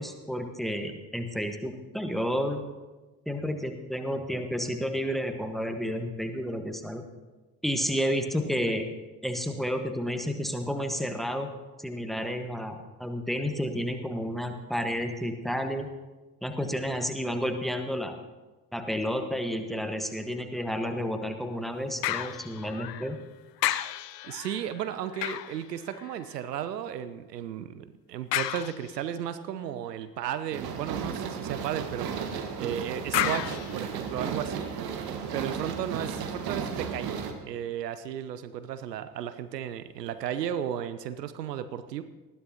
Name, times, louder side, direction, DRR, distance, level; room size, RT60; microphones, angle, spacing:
voice 1, 0.0-2.6 3.3-7.0 7.6-8.9 9.2-11.5 11.8-15.9 16.4-18.2 18.7-23.2, equal, ahead, 6 dB, 1.4 m, -31 dB
sound 1, 22.0-23.2 23.6-26.4 28.3-29.3 33.1-34.6 35.2-35.3, left 13 dB, 75° left, 0.6 m, -33 dB
voice 2, 24.2-32.1 32.6-34.7 35.3-37.2 37.4-42.0, right 9 dB, 75° right, 12 dB, 0.7 m, -34 dB
sound 2, 30.5-37.3, right 6 dB, 45° right, 1.5 m, -34 dB
19.5 x 13.5 x 2.9 m, 1.2 s
figure-of-eight pair, 55°, 49 cm